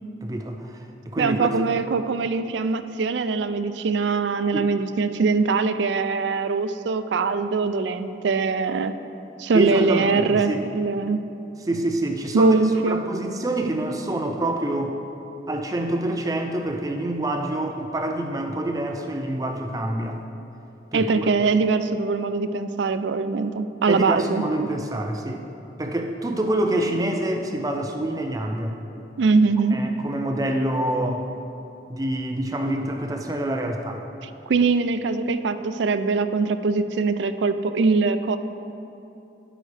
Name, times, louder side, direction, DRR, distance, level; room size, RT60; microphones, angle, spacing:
voice 1, 0.2-1.5 1.9-2.0 4.5-4.7 9.5-10.6 11.7-12.6 12.9-14.9 15.5-20.2 20.9-21.3 23.9-25.5 25.8-28.8 29.7-31.3 31.9-34.0, right 1 dB, 20° right, 4 dB, 0.4 m, -26 dB
voice 2, 1.2-8.9 9.4-11.2 12.3-13.0 20.9-24.4 29.2-29.8 34.2-38.4, right 4 dB, 85° right, 11 dB, 0.4 m, -22 dB
11.0 x 8.7 x 3.3 m, 2.8 s
head